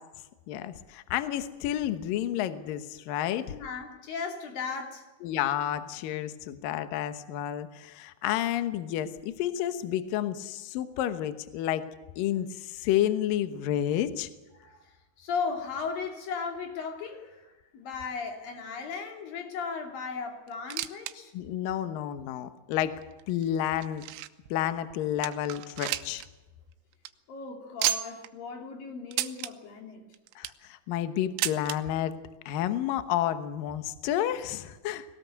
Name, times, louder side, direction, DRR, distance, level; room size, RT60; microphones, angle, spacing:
voice 1, 0.5-3.5 5.2-11.9 12.2-14.3 21.3-22.9 23.3-24.0 24.5-26.2 30.4-32.1 32.5-35.0, left 11 dB, 75° left, 11 dB, 2.0 m, -30 dB
voice 2, 3.5-5.1 14.5-21.3 27.3-30.0, left 5 dB, 50° left, 4 dB, 4.0 m, -36 dB
sound 1, 20.5-21.2 21.4-21.5 22.2-22.3 23.0-24.5 24.9-25.0 25.2-26.3 26.6-26.7 26.9-27.1 27.8-28.3 29.1-29.5 30.1-30.7 31.4-31.8 32.7-32.8 33.0-33.1 34.0-34.1, right 14 dB, 90° right, 3.5 m, -32 dB
21.5 x 18.0 x 8.2 m, 1.1 s
omnidirectional pair, 5.7 m